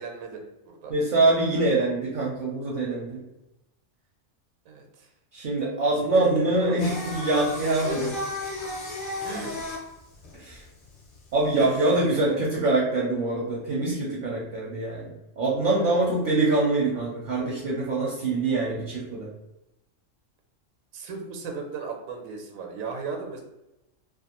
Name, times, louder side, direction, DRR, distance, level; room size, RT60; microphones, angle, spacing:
voice 1, 0.0-0.9 4.7-5.1 5.9-6.8 7.8-8.0 9.2-9.8 11.6-12.4 15.8-16.0 20.9-23.4, right 4 dB, 90° right, 2 dB, 1.0 m, -36 dB
voice 2, 0.9-3.2 5.3-8.1 10.3-10.6 11.3-19.3, right 2 dB, 60° right, -3 dB, 0.5 m, -24 dB
Singing, 6.8-11.7, left 2 dB, 45° left, 0.8 m, -34 dB
2.4 x 2.3 x 2.8 m, 0.94 s
omnidirectional pair, 1.4 m